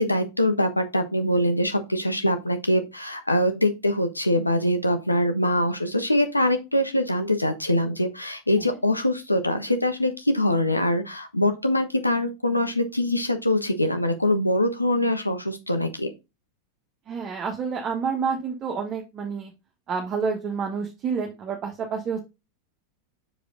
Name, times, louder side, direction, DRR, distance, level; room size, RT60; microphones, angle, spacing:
voice 1, 0.0-16.1, left 1 dB, 85° left, 8 dB, 1.2 m, -23 dB
voice 2, 17.1-19.5 19.9-22.2, right 5 dB, 30° right, 1 dB, 1.4 m, -29 dB
6.8 x 5.0 x 3.8 m, 0.25 s
figure-of-eight pair, 90°, 0 cm